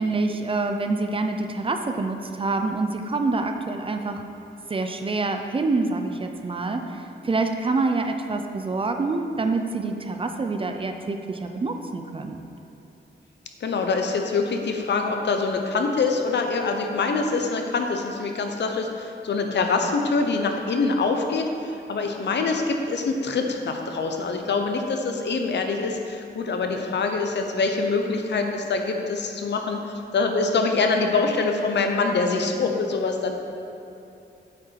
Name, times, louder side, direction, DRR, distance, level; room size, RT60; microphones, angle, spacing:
voice 1, 0.0-4.2 4.7-12.4, right 3 dB, 30° right, 5 dB, 0.5 m, -26 dB
voice 2, 13.6-33.4, left 4 dB, 65° left, 4 dB, 0.9 m, -25 dB
8.5 x 7.7 x 4.7 m, 2.8 s
wide cardioid pair, 180°, 19 cm